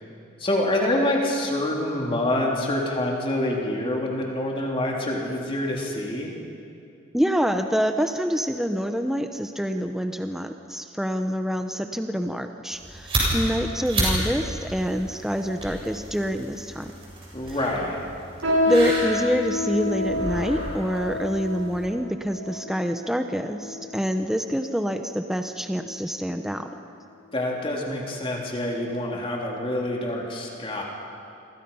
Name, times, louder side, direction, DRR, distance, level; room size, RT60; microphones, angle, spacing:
voice 1, 0.4-6.3 17.3-18.0 27.3-30.8, left 1 dB, 30° left, -1 dB, 3.4 m, -26 dB
voice 2, 7.1-16.9 18.7-26.7, equal, ahead, 6 dB, 0.8 m, -26 dB
sound 1, 12.7-21.9, right 1 dB, 30° right, 7.3 m, -31 dB
sound 2, 18.4-24.1 24.8-24.9 25.6-25.9 26.3-26.5 27.2-27.3, left 2 dB, 85° right, 7.8 m, -29 dB
29.0 x 25.0 x 5.7 m, 2.5 s
head